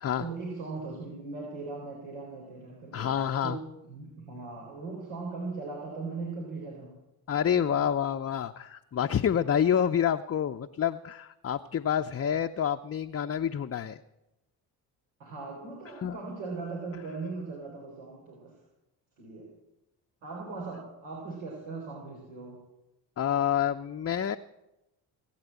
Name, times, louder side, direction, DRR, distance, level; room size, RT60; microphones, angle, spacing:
voice 1, 0.2-3.2 3.4-7.0 7.5-7.7 15.2-18.6 19.2-19.5 20.2-22.6, right 3 dB, 80° right, -1 dB, 3.8 m, -39 dB
voice 2, 2.9-3.6 7.3-14.0 16.0-16.2 23.2-24.4, left 9 dB, 30° left, 6 dB, 0.6 m, -28 dB
18.5 x 8.8 x 8.2 m, 0.94 s
supercardioid pair, 60°, 49 cm